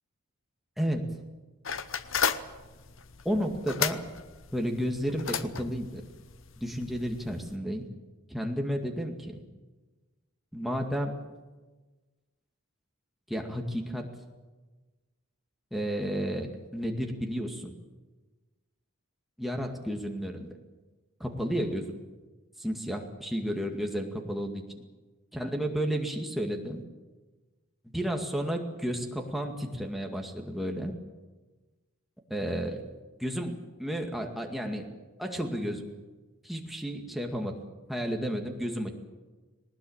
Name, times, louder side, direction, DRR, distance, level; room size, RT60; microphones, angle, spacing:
voice 1, 0.8-1.2 3.2-4.0 4.5-6.0 6.6-7.9 8.3-9.4 10.5-11.2 13.3-14.1 15.7-17.7 19.4-20.5 21.2-22.0 22.6-24.6 25.3-26.8 27.9-30.9 32.3-32.8 33.2-34.9 35.2-35.9 36.4-37.6 37.9-38.9, equal, ahead, 2 dB, 2.1 m, -32 dB
sound 1, 1.6-7.6, left 7 dB, 60° left, 1.0 m, -35 dB
20.0 x 19.5 x 8.8 m, 1.3 s
head